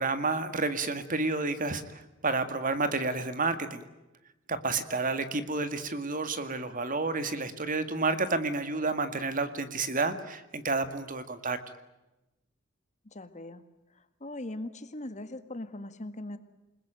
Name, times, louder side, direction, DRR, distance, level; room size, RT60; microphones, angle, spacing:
voice 1, 0.0-3.8 4.5-11.6, right 3 dB, 45° right, 10 dB, 2.0 m, -30 dB
voice 2, 13.1-13.6 14.0-16.4, left 1 dB, 35° left, 10 dB, 1.8 m, -40 dB
28.5 x 20.5 x 9.1 m, 0.98 s
head